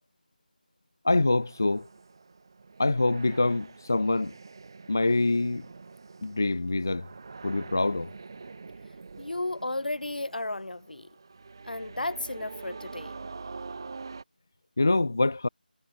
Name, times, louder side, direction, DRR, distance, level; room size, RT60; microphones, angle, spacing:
voice 1, 1.0-1.9 2.8-4.3 4.9-5.7 6.2-7.1 7.4-8.1 14.8-15.5, left 2 dB, 20° left, 0.3 m, -25 dB
sound 1, 1.1-14.2, right 4 dB, 25° right, 1.9 m, -45 dB
voice 2, 9.2-11.1 11.6-13.1, left 2 dB, 65° left, 7.0 m, -33 dB
figure-of-eight pair, 180°, 5 cm